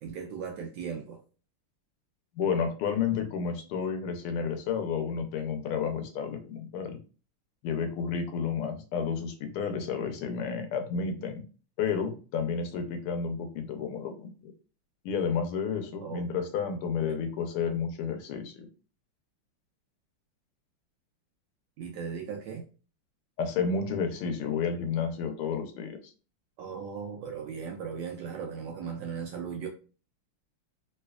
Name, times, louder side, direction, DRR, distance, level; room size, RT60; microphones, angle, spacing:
voice 1, 0.0-1.2 16.0-16.2 17.1-17.3 21.8-22.6 26.6-29.7, right 6 dB, 75° right, 1.1 m, -37 dB
voice 2, 2.4-7.0 7.6-11.4 11.8-14.5 15.0-18.7 23.4-26.0, left 6 dB, 85° left, 1.6 m, -31 dB
3.3 x 3.2 x 2.3 m
omnidirectional pair, 2.4 m